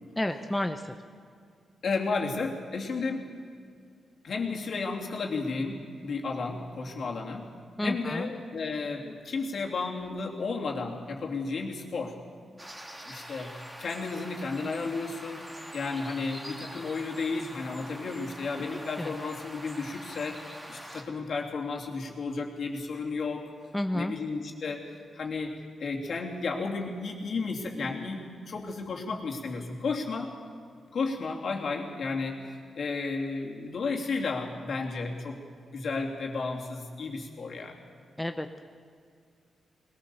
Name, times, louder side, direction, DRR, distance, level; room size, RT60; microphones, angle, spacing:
voice 1, 0.2-0.9 7.8-8.3 19.0-19.1 23.7-24.1 38.2-38.6, left 1 dB, 10° left, 6 dB, 0.8 m, -30 dB
voice 2, 1.8-3.3 4.2-7.5 7.8-12.2 13.0-15.4 15.7-23.5 23.9-24.8 25.1-30.3 30.9-35.4 35.7-37.8, left 4 dB, 60° left, 0 dB, 2.9 m, -33 dB
sound 1, 12.6-21.0, equal, 10° right, 2.3 m, -44 dB
20.5 x 18.5 x 7.1 m, 2.2 s
cardioid pair, 100°, 0 cm